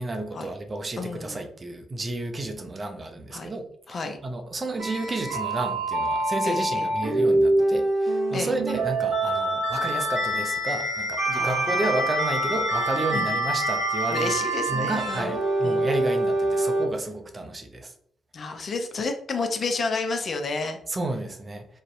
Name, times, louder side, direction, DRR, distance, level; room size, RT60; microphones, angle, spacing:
voice 1, 0.0-14.4 14.7-17.9 20.9-21.7, right 2 dB, 35° right, 5 dB, 0.4 m, -31 dB
voice 2, 1.0-1.4 3.3-3.5 3.9-4.2 6.4-6.9 8.3-8.5 11.3-12.1 13.1-13.3 14.1-15.9 18.3-20.8, left 3 dB, 50° left, 6 dB, 0.4 m, -31 dB
sound 1, 4.8-16.8, right 1 dB, 60° right, 0.8 m, -25 dB
2.5 x 2.0 x 2.5 m, 0.66 s
hypercardioid pair, 40°, 0 cm